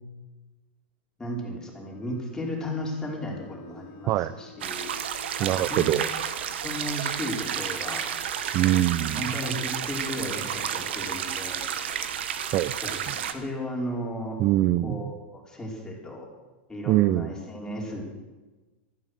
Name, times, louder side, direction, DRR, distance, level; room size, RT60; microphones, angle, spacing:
voice 1, 1.2-4.9 5.4-5.8 6.6-8.0 9.1-11.6 12.7-14.4 14.8-16.3 16.7-18.0, left 1 dB, 10° left, -2 dB, 5.0 m, -35 dB
Bowed string instrument, 1.8-5.8, left 4 dB, 45° left, 1.9 m, -49 dB
sound 1, 4.6-13.3, right 9 dB, 75° right, 1.4 m, -31 dB
voice 2, 5.4-6.1 8.5-9.3 12.5-12.7 14.4-15.0 16.9-17.3, right 14 dB, 40° right, 15 dB, 0.6 m, -23 dB
16.0 x 13.5 x 6.5 m, 1.2 s
hypercardioid pair, 110°, 6 cm